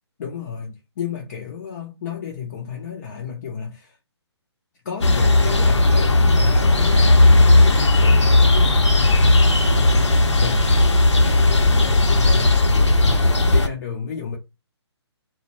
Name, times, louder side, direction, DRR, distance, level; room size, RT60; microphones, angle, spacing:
voice 1, 0.2-3.9 4.9-9.4 9.7-10.9 11.2-14.4, left 7 dB, 35° left, 0.4 m, -32 dB
sound 1, 5.0-13.7, left 2 dB, 85° left, 0.6 m, -15 dB
2.1 x 2.0 x 2.9 m
figure-of-eight pair, 140°, 15 cm